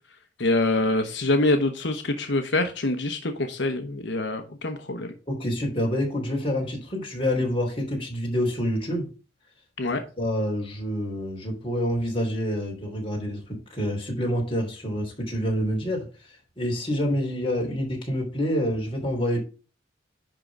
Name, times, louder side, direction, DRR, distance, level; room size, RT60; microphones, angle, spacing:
voice 1, 0.4-5.1 9.8-10.0, left 2 dB, 75° left, 1.0 m, -25 dB
voice 2, 5.3-9.1 10.2-19.4, equal, 30° left, 3.3 m, -27 dB
10.5 x 3.8 x 6.0 m
head